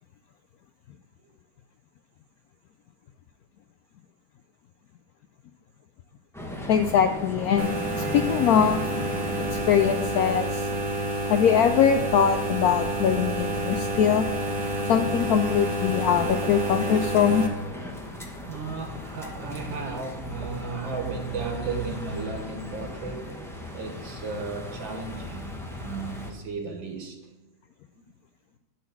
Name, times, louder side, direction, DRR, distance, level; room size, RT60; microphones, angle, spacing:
sound 1, 6.3-26.3, equal, 5° left, 0.5 m, -37 dB
voice 1, 6.7-8.8 9.5-10.7 11.3-14.3 14.9-17.4, left 8 dB, 85° left, 7 dB, 0.8 m, -22 dB
sound 2, 7.6-17.5, right 2 dB, 40° right, 1.4 m, -29 dB
voice 2, 18.5-23.3 23.7-27.2, right 4 dB, 75° right, 3 dB, 2.0 m, -35 dB
11.5 x 4.3 x 7.4 m, 1.1 s
omnidirectional pair, 2.2 m